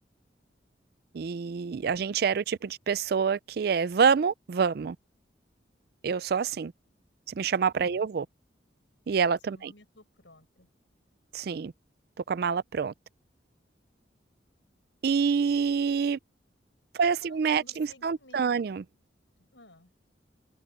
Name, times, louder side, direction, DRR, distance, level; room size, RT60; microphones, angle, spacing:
voice 1, 1.1-5.0 6.0-6.7 7.3-8.3 9.1-9.7 11.3-11.7 12.3-12.9 15.0-16.2 16.9-18.8, right 6 dB, 55° right, 0.4 m, -27 dB
voice 2, 7.7-8.1 9.5-10.7 16.9-18.6 19.5-19.9, left 2 dB, 90° left, 6.5 m, -54 dB
head